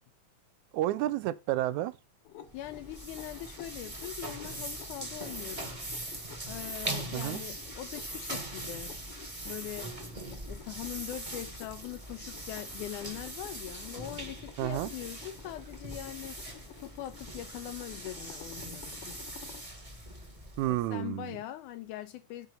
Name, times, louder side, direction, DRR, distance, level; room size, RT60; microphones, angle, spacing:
voice 1, 0.7-1.9 7.1-7.4 14.6-14.9 20.6-21.3, right 15 dB, 80° right, 1.8 m, -30 dB
sound 1, 2.2-19.7, left 10 dB, 60° left, 1.6 m, -53 dB
voice 2, 2.5-5.7 6.5-9.0 9.4-9.9 10.2-16.4 16.8-19.3 20.6-22.5, left 13 dB, 80° left, 2.1 m, -42 dB
sound 2, 2.5-20.9, right 1 dB, 20° right, 1.0 m, -41 dB
6.2 x 5.3 x 6.7 m
omnidirectional pair, 3.7 m